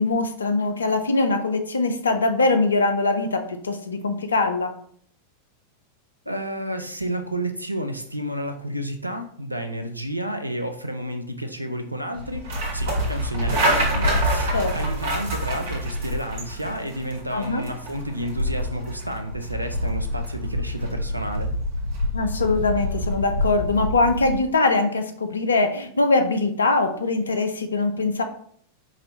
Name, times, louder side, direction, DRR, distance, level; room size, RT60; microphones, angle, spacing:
voice 1, 0.0-4.7 14.5-14.7 17.3-17.6 22.1-28.2, left 3 dB, 70° left, 8 dB, 0.5 m, -22 dB
voice 2, 6.3-21.5, right 1 dB, 85° right, 6 dB, 0.5 m, -31 dB
sound 1, 12.2-24.4, equal, 50° right, 1.4 m, -27 dB
4.9 x 2.6 x 2.8 m, 0.62 s
figure-of-eight pair, 90°, 0 cm